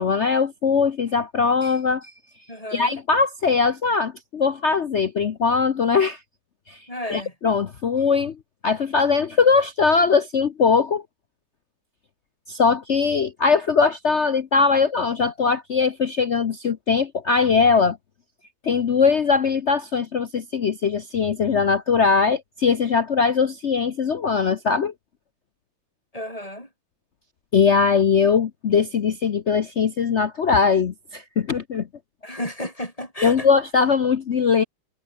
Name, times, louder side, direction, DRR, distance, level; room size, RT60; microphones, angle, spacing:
voice 1, 0.0-2.1 2.7-6.2 6.7-8.4 8.6-11.0 12.5-18.0 18.6-24.9 27.5-31.9 33.2-34.6, left 5 dB, 60° left, 0.7 m, -21 dB
voice 2, 2.5-2.9 6.9-7.3 26.1-26.7 32.2-33.5, left 1 dB, 15° left, 6.3 m, -32 dB
omnidirectional pair, 2.3 m